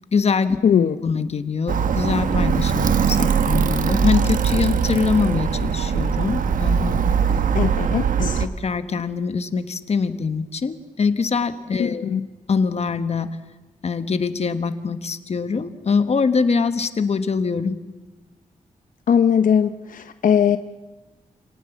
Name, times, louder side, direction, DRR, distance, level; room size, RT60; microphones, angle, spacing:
voice 1, 0.1-0.6 1.0-7.1 8.2-12.1 12.5-13.4 13.8-17.8, left 5 dB, 50° left, 10 dB, 1.4 m, -23 dB
voice 2, 0.6-1.0 7.5-8.4 11.8-12.2 19.1-20.6, left 8 dB, 80° left, 10 dB, 0.8 m, -19 dB
Alarm, 1.7-8.5, right 6 dB, 85° right, 1.0 m, -21 dB
28.0 x 18.0 x 7.3 m, 1.1 s
wide cardioid pair, 105°, 14 cm